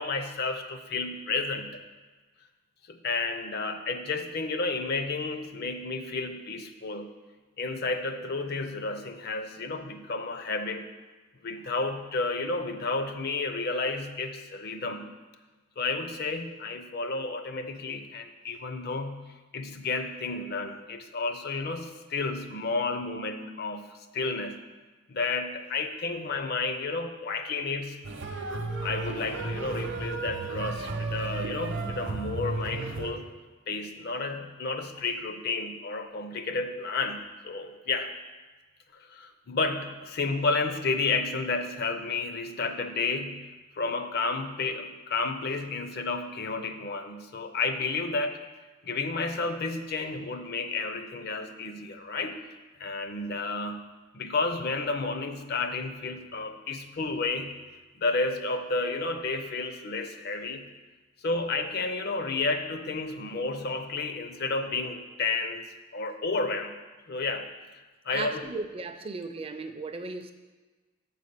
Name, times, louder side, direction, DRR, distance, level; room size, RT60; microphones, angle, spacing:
voice 1, 0.0-1.8 2.9-7.1 7.6-10.9 11.4-15.1 15.8-23.9 24.1-24.6 25.1-28.1 28.8-33.3 33.7-38.1 39.1-48.4 48.8-52.4 52.8-53.8 54.1-57.6 58.0-60.7 61.2-65.6 65.9-66.8 67.1-67.5 68.0-68.5, left 3 dB, 50° left, 7 dB, 0.5 m, -31 dB
sound 1, 28.0-33.1, right 3 dB, 60° right, 0.7 m, -33 dB
voice 2, 68.1-70.3, right 3 dB, 25° right, 7 dB, 0.4 m, -36 dB
7.1 x 4.1 x 6.6 m, 1.3 s
head